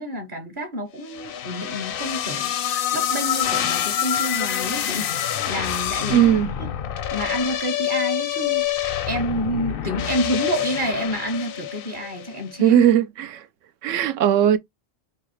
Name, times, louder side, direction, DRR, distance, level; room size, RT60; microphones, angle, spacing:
voice 1, 0.0-6.7 7.1-12.8, equal, 45° right, 1.0 m, -29 dB
sound 1, 1.1-12.4, left 10 dB, 60° left, 0.6 m, -26 dB
voice 2, 6.1-6.5 12.6-13.5 13.8-14.6, right 10 dB, 80° right, 0.9 m, -18 dB
4.7 x 2.4 x 3.0 m
omnidirectional pair, 1.3 m